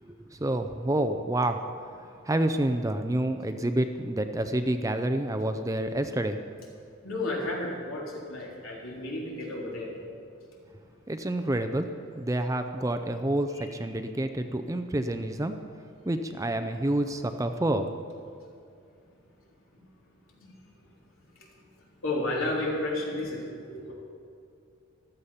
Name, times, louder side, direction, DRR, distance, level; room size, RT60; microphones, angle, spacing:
voice 1, 0.0-1.6 2.3-6.4 11.1-11.9 12.2-15.6 16.1-17.9, right 1 dB, 15° right, 8 dB, 0.5 m, -28 dB
voice 2, 7.0-9.9 11.2-11.3 13.5-13.7 22.0-23.4 23.7-23.9, left 2 dB, 75° left, -3 dB, 3.6 m, -32 dB
14.5 x 13.0 x 5.7 m, 2.5 s
head